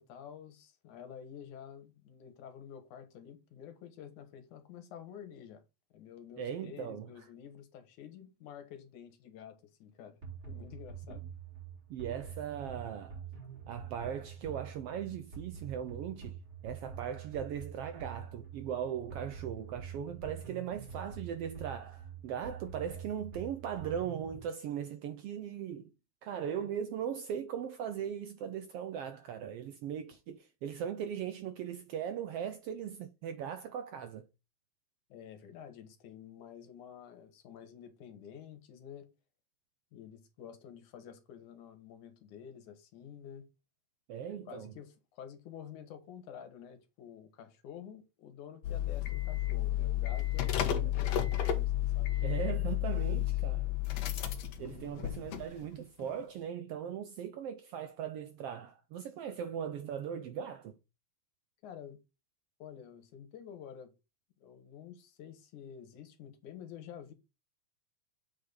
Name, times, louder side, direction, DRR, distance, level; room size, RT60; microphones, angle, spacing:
voice 1, 0.0-5.6 5.9-10.2 10.5-11.2 35.1-39.1 39.9-43.4 44.5-52.4 54.6-55.0 61.6-62.0 62.6-63.9 64.4-67.1, left 8 dB, 85° left, 2.8 m, -50 dB
voice 2, 6.4-7.1 11.1-11.2 11.9-13.2 13.7-25.9 26.2-34.2 44.1-44.7 50.6-50.9 52.2-53.7 54.6-60.8, right 9 dB, 75° right, 1.4 m, -39 dB
sound 1, 10.2-24.4, right 7 dB, 35° right, 4.9 m, -46 dB
sound 2, 48.6-55.7 56.0-56.1, left 13 dB, 65° left, 2.2 m, -32 dB
7.8 x 5.3 x 3.9 m
omnidirectional pair, 3.4 m